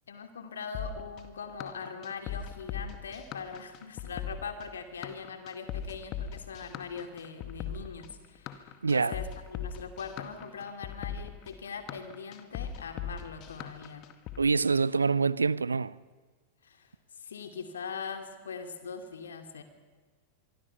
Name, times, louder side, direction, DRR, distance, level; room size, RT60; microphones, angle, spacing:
voice 1, 0.1-14.1 16.6-16.9 17.2-19.6, left 5 dB, 70° left, 2.7 m, -41 dB
sound 1, 0.7-14.4, left 8 dB, 40° left, 1.9 m, -39 dB
voice 2, 8.8-9.1 14.4-15.9, right 4 dB, 75° right, 0.6 m, -25 dB
24.5 x 24.5 x 5.9 m
figure-of-eight pair, 90°, 0 cm